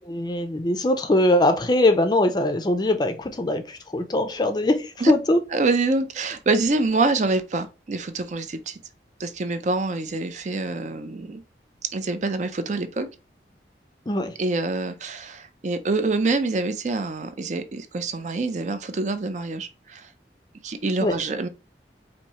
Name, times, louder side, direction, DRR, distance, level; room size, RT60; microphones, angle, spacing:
voice 1, 0.0-5.4 14.1-14.4 21.0-21.2, left 1 dB, 25° left, 0.4 m, -22 dB
voice 2, 5.5-8.8 9.2-11.4 11.9-13.1 14.4-20.1 20.6-21.5, right 3 dB, 40° right, 0.4 m, -26 dB
4.3 x 2.6 x 2.8 m
head